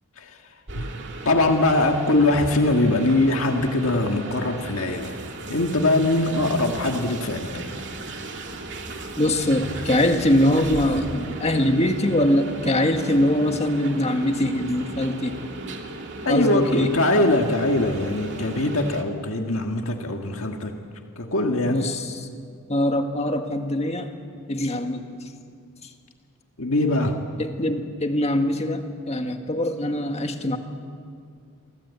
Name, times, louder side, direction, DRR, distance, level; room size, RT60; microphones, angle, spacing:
sound 1, 0.7-19.0, right 2 dB, 55° right, 2.4 m, -36 dB
voice 1, 1.3-5.2 5.5-7.6 16.2-20.8 21.2-21.8 26.6-27.2, left 2 dB, 65° left, 3 dB, 1.8 m, -22 dB
voice 2, 9.2-15.4 16.3-16.9 21.7-22.3 22.7-24.1 24.5-25.3 25.8-25.9 27.4-30.6, left 1 dB, 30° left, 5 dB, 1.8 m, -23 dB
28.5 x 23.5 x 8.3 m, 2.3 s
head